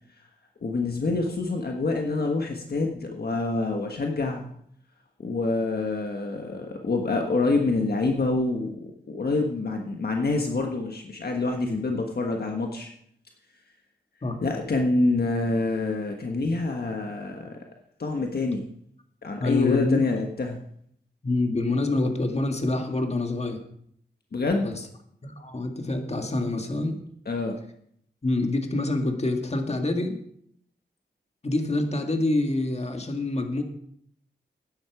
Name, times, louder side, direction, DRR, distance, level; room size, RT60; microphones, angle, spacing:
voice 1, 0.6-4.5 5.2-12.9 14.4-17.6 18.0-18.6 19.2-20.6 24.3-24.7 27.2-27.6, left 3 dB, 60° left, 2 dB, 1.4 m, -26 dB
voice 2, 19.4-20.0 21.2-23.6 24.6-24.7 25.2-27.0 28.2-30.2 31.4-33.6, left 2 dB, 35° left, 4 dB, 1.9 m, -26 dB
12.0 x 9.9 x 4.9 m, 0.68 s
wide cardioid pair, 70°, 18 cm